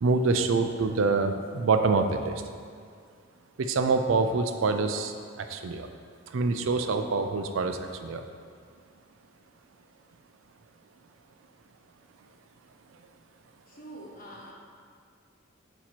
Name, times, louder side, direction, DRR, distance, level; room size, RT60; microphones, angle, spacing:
voice 1, 0.0-2.4 3.6-5.9 6.3-8.2, right 4 dB, 80° right, 7 dB, 0.4 m, -26 dB
voice 2, 13.7-14.5, right 1 dB, 45° left, -3 dB, 1.1 m, -45 dB
8.8 x 3.0 x 4.4 m, 2.2 s
head